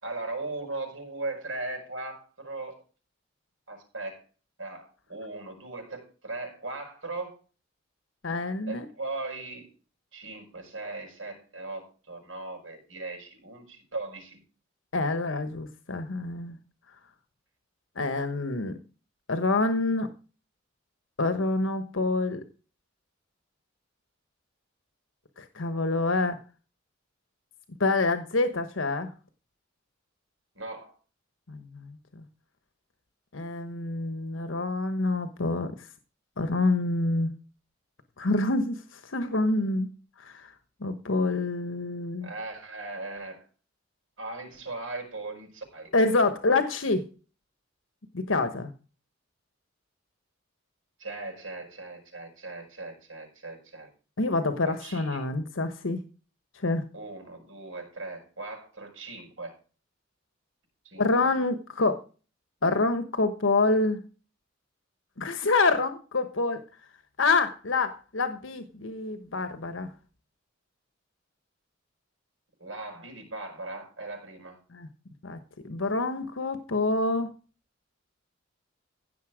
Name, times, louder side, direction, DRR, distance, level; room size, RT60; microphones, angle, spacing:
voice 1, 0.0-2.8 3.7-4.2 4.6-7.4 8.7-9.7 10.1-14.4 30.5-30.9 42.2-43.5 44.2-46.1 51.0-53.9 54.6-55.3 56.9-59.6 60.8-61.3 72.6-74.6, right 2 dB, 90° right, 3 dB, 7.0 m, -38 dB
voice 2, 8.2-8.8 14.9-16.6 18.0-18.8 19.3-20.1 21.2-22.4 25.4-26.4 27.8-29.1 31.5-31.9 33.3-35.7 36.4-37.4 38.2-39.9 40.2-40.5 40.8-42.3 45.9-47.1 48.1-48.7 54.2-56.0 56.6-56.9 61.0-62.0 62.6-64.0 65.2-66.6 67.2-69.9 74.7-74.9 75.2-75.4 75.6-77.3, left 3 dB, 85° left, 9 dB, 1.2 m, -27 dB
16.0 x 6.9 x 5.0 m, 0.35 s
head